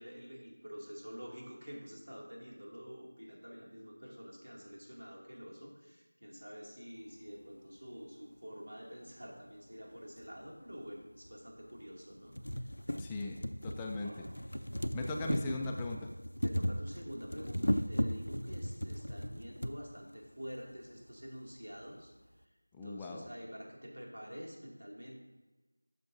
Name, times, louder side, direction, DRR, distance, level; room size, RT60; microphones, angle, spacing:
voice 1, 0.0-12.8 13.9-14.4 15.2-15.4 16.4-22.1 22.8-25.2, equal, 80° right, -1 dB, 2.4 m, -48 dB
sound 1, 10.2-10.3 11.3-11.4 11.8-11.9 12.2-19.8 20.7-20.8 21.0-21.1, equal, 90° left, 0.5 m, -36 dB
voice 2, 13.0-13.4 13.6-14.1 14.9-16.1 22.7-23.3, left 2 dB, 10° left, 1 dB, 0.4 m, -38 dB
12.0 x 6.7 x 2.7 m, 1.2 s
figure-of-eight pair, 175°, 0 cm